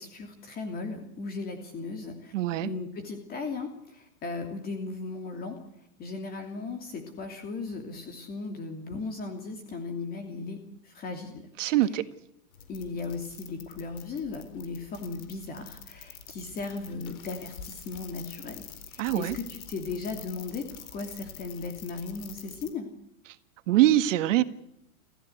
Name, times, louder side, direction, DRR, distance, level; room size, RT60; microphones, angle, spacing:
voice 1, 0.0-2.3 2.6-5.6 6.0-11.4 12.7-22.9, left 4 dB, 20° left, 2.9 m, -37 dB
voice 2, 2.3-2.7 11.6-12.0 19.0-19.4 23.7-24.4, right 14 dB, 55° right, 1.9 m, -23 dB
sound 1, 12.5-22.7, left 8 dB, 65° left, 4.5 m, -46 dB
29.0 x 15.0 x 8.1 m
supercardioid pair, 155°, 44 cm